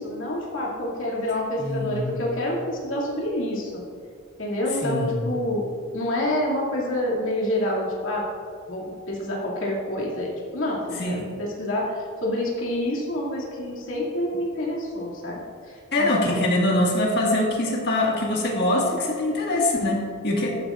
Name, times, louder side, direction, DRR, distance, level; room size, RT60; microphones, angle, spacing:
voice 1, 0.0-3.8 4.4-5.6 5.9-8.3 8.7-16.4, left 1 dB, 70° left, -4 dB, 2.4 m, -28 dB
voice 2, 1.6-2.1 4.8-5.2 11.0-11.3 15.9-20.5, left 1 dB, 50° left, -2 dB, 1.8 m, -23 dB
13.5 x 10.5 x 2.5 m, 2.3 s
head